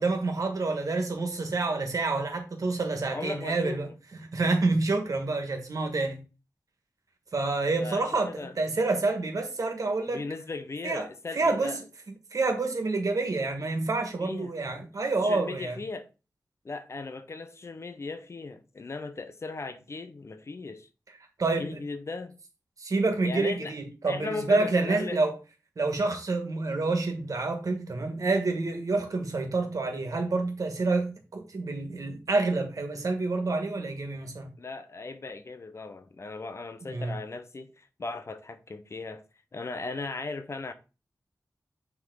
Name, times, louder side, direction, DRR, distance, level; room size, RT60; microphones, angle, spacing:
voice 1, 0.0-3.9 4.3-6.2 7.3-10.2 10.8-11.1 11.3-11.8 12.3-15.8 21.4-21.8 22.8-25.4 25.8-34.5 36.9-37.1, right 3 dB, 60° right, 1.7 m, -28 dB
voice 2, 3.1-3.9 7.8-8.5 10.1-11.8 14.2-14.5 15.2-16.1 16.6-20.9 21.6-22.3 23.2-23.7 24.0-25.2 34.6-39.2 39.5-40.7, left 3 dB, 45° left, 0.8 m, -37 dB
9.4 x 3.6 x 3.9 m
wide cardioid pair, 110°, 7 cm